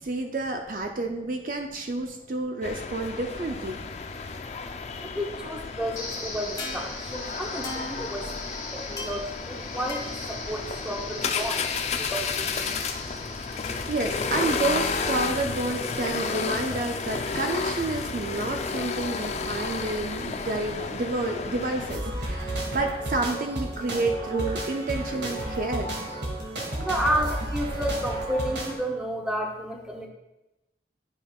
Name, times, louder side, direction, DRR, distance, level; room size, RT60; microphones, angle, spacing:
voice 1, 0.0-3.8 13.9-25.9, right 2 dB, 45° right, 4 dB, 0.4 m, -30 dB
sound 1, 2.6-22.0, left 4 dB, 40° left, 0.4 m, -32 dB
voice 2, 5.0-12.9 13.5-13.6 26.7-30.1, equal, 5° right, 0 dB, 0.7 m, -32 dB
sound 2, 6.0-15.0, left 2 dB, 20° left, 1.1 m, -39 dB
sound 3, 21.9-28.7, right 1 dB, 85° right, 1.6 m, -32 dB
10.5 x 5.3 x 2.3 m, 0.98 s
head